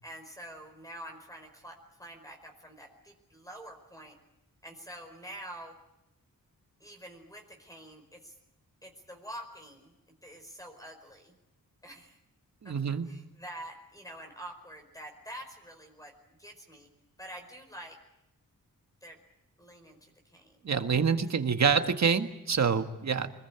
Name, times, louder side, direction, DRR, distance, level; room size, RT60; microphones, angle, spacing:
voice 1, 0.0-4.2 4.6-5.7 6.8-8.4 8.8-9.9 10.2-11.3 11.8-12.2 12.6-12.7 13.0-16.9 17.2-18.0 19.0-19.2 19.6-20.7 20.9-21.2, right 1 dB, 10° left, 3 dB, 5.0 m, -47 dB
voice 2, 12.6-13.1 20.6-23.3, right 6 dB, 50° right, 7 dB, 1.7 m, -26 dB
25.5 x 21.0 x 8.8 m, 0.88 s
wide cardioid pair, 125°, 34 cm